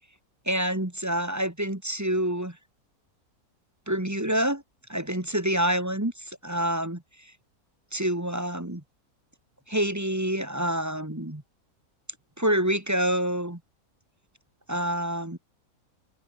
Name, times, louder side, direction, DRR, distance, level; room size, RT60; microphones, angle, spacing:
voice 1, 0.5-2.6 3.9-4.6 4.9-7.3 7.9-8.8 9.7-11.4 12.4-13.6 14.7-15.4, right 1 dB, 10° right, 1.9 m, -27 dB
omnidirectional pair, 1.7 m